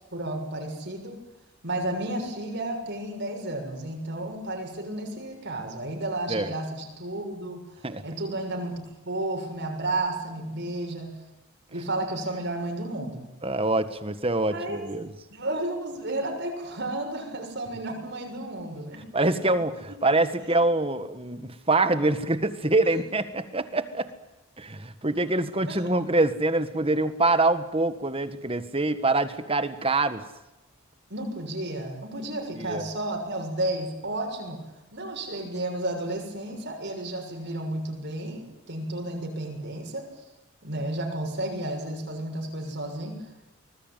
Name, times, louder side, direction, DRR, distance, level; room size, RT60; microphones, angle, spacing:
voice 1, 0.1-1.2 1.6-7.7 8.0-11.2 11.7-13.3 14.5-14.9 15.3-19.1 19.9-20.0 20.4-20.6 25.7-25.9 31.1-34.6 34.9-40.1 40.6-43.3, right 1 dB, 55° right, 3 dB, 6.7 m, -32 dB
voice 2, 13.4-15.1 19.1-24.1 24.6-30.2 32.6-32.8, right 2 dB, 25° right, 11 dB, 1.7 m, -25 dB
25.0 x 20.5 x 9.3 m, 1.0 s
head